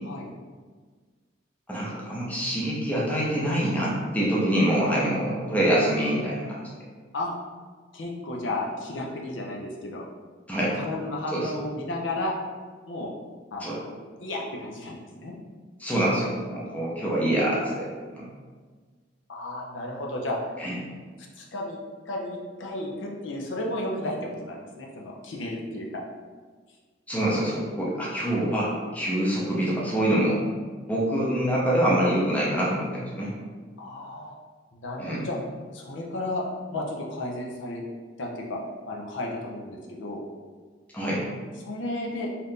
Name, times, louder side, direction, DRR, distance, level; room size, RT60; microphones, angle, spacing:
voice 1, 1.7-6.7 10.5-10.8 11.3-11.5 13.6-13.8 15.8-17.9 18.1-18.3 20.6-20.8 27.1-30.4 30.9-33.3 35.0-35.3 40.9-41.2, right 1 dB, 10° left, -6 dB, 0.6 m, -25 dB
voice 2, 7.9-10.0 10.8-12.3 12.9-13.1 13.5-13.8 14.2-15.3 19.3-20.4 21.4-21.8 22.1-26.0 33.8-34.3 34.7-35.4 35.7-36.4 36.7-37.8 38.2-38.6 38.9-40.2 41.6-42.3, left 2 dB, 70° left, -1 dB, 0.6 m, -33 dB
2.8 x 2.5 x 3.5 m, 1.5 s
head